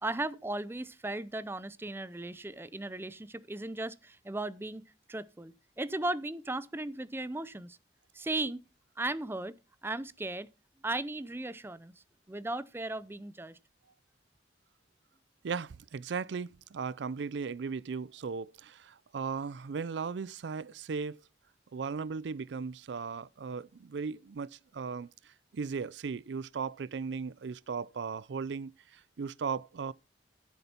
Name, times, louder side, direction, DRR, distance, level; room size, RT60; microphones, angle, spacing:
voice 1, 0.0-7.8 8.1-8.6 9.0-9.6 9.8-10.5 10.8-11.9 12.3-13.6, right 2 dB, 15° right, 0.5 m, -36 dB
voice 2, 15.4-21.2 21.7-29.9, right 5 dB, 85° right, 0.4 m, -37 dB
14.5 x 6.8 x 4.4 m
head